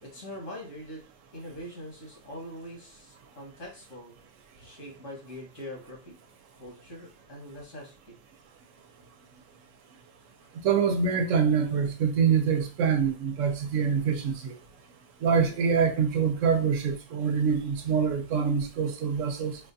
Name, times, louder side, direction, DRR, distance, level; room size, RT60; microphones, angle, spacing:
voice 1, 0.0-1.0 1.3-4.1 4.6-6.2 6.6-8.2 10.4-10.5, equal, 85° left, 2.0 m, -43 dB
voice 2, 10.6-14.5 15.2-19.6, right 6 dB, 85° right, 1.0 m, -25 dB
4.9 x 2.3 x 2.7 m
omnidirectional pair, 1.3 m